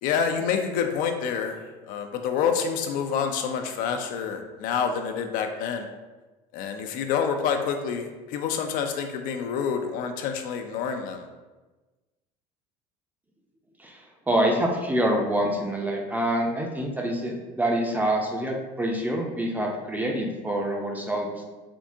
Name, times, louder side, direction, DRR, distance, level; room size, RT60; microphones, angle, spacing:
voice 1, 0.0-5.9 6.5-11.3, left 6 dB, 70° left, 5 dB, 0.4 m, -27 dB
voice 2, 13.8-21.3, right 1 dB, 10° right, 1 dB, 0.5 m, -26 dB
3.5 x 2.7 x 2.6 m, 1.2 s
supercardioid pair, 100°, 15 cm